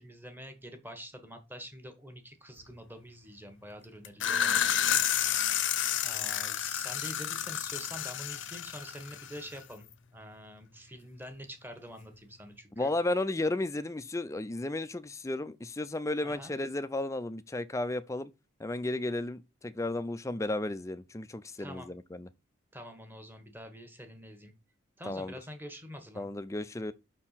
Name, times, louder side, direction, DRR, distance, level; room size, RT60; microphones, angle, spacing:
voice 1, 0.0-4.6 6.0-9.9 10.1-12.9 16.2-16.5 21.6-21.9 22.7-24.5 25.0-26.3, equal, 10° right, 1.2 m, -46 dB
sound 1, 4.0-9.6, left 10 dB, 60° left, 0.7 m, -30 dB
voice 2, 12.8-18.3 18.6-22.3 25.1-25.3 26.2-26.9, left 2 dB, 15° left, 0.4 m, -33 dB
6.0 x 4.4 x 5.7 m
head